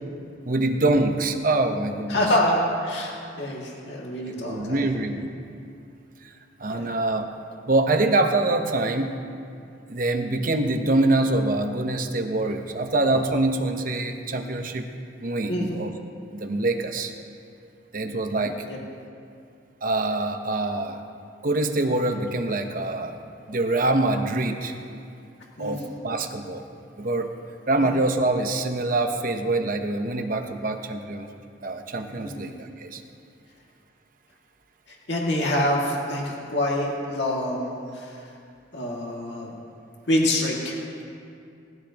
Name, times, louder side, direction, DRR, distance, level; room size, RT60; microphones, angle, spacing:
voice 1, 0.4-2.2 4.3-5.4 6.2-6.3 6.6-7.3 7.7-9.2 9.9-14.9 15.2-15.9 16.3-17.1 17.9-18.6 19.8-21.0 21.4-23.2 23.5-24.7 25.6-26.6 27.0-27.3 27.7-31.3 31.6-33.0, right 2 dB, 50° right, 6 dB, 0.9 m, -25 dB
voice 2, 2.1-4.9 6.7-6.9 15.5-15.7 25.6-25.8 27.8-27.9 32.2-32.5 34.9-38.2 38.7-39.5 40.1-41.0, left 1 dB, 70° left, -3 dB, 2.2 m, -26 dB
19.0 x 13.5 x 2.9 m, 2.5 s
head